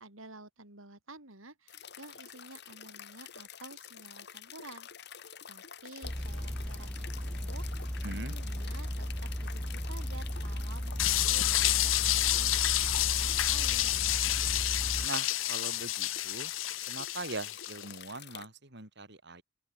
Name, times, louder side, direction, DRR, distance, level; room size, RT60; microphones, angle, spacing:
voice 1, 0.0-4.9 5.5-14.0, right 2 dB, 85° right, 7.6 m, -51 dB
sound 1, 1.7-18.5, left 8 dB, 55° left, 3.8 m, -48 dB
sound 2, 6.0-15.1, equal, 5° left, 1.0 m, -36 dB
voice 2, 8.0-8.3 15.0-16.5 16.9-19.4, right 3 dB, 60° right, 5.3 m, -41 dB
sound 3, 11.0-17.8, left 14 dB, 80° left, 1.3 m, -29 dB
open air
head